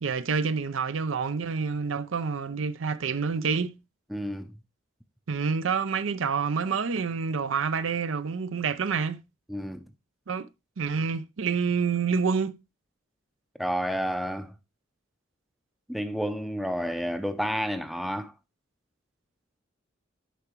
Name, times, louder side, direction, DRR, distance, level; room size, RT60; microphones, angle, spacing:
voice 1, 0.0-3.8 5.3-9.2 10.3-10.5 10.8-12.6, right 5 dB, 80° right, 0.6 m, -28 dB
voice 2, 4.1-4.5 9.5-9.8 13.6-14.5 15.9-18.3, equal, ahead, 0.5 m, -30 dB
10.0 x 6.0 x 3.0 m
head